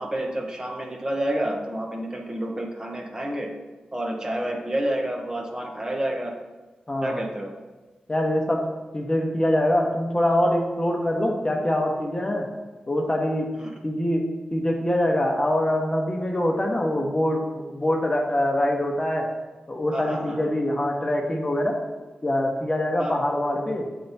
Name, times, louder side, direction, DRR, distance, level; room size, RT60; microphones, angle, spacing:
voice 1, 0.0-3.5 3.9-6.3 7.0-7.5 13.6-13.7 19.9-20.5 23.0-23.1, right 1 dB, 25° right, 1 dB, 1.0 m, -29 dB
voice 2, 6.9-7.2 8.1-8.6 8.9-12.5 12.9-13.5 13.8-14.2 14.5-19.3 19.7-21.8 22.2-23.9, left 1 dB, 30° left, 1 dB, 1.0 m, -24 dB
7.7 x 3.4 x 4.1 m, 1.2 s
cardioid pair, 55°, 3 cm